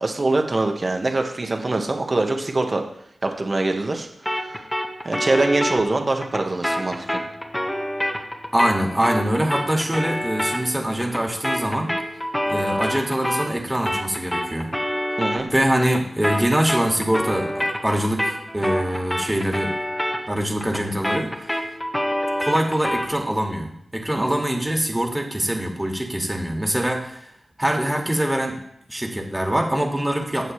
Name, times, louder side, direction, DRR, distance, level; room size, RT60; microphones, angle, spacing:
voice 1, 0.0-2.8 3.2-4.1 4.4-4.6 5.0-7.2 15.2-15.5 24.2-24.3, right 2 dB, 45° right, 4 dB, 1.5 m, -23 dB
sound 1, 4.3-13.6 13.9-23.2, equal, 10° left, 1.5 m, -27 dB
voice 2, 8.5-11.9 12.4-14.7 15.5-19.8 20.3-21.6 22.4-27.2 27.6-28.6 28.9-30.5, right 1 dB, 15° right, 1 dB, 2.1 m, -23 dB
16.0 x 6.6 x 3.3 m, 0.72 s
cardioid pair, 60°, 0 cm